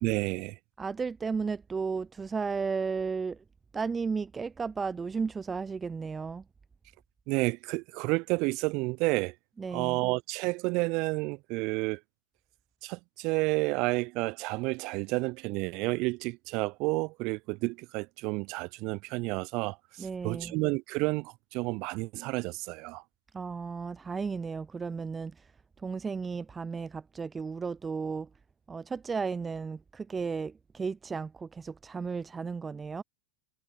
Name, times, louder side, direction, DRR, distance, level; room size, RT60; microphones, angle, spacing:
voice 1, 0.0-0.6 7.3-9.3 9.7-12.0 12.8-23.0, right 25 dB, 50° right, 0.7 m, -30 dB
voice 2, 0.8-3.4 3.7-6.4 9.6-10.0 20.0-20.6 23.3-25.5 25.8-28.3 28.7-33.0, right 5 dB, 15° right, 0.3 m, -34 dB
figure-of-eight pair, 90°, 0 cm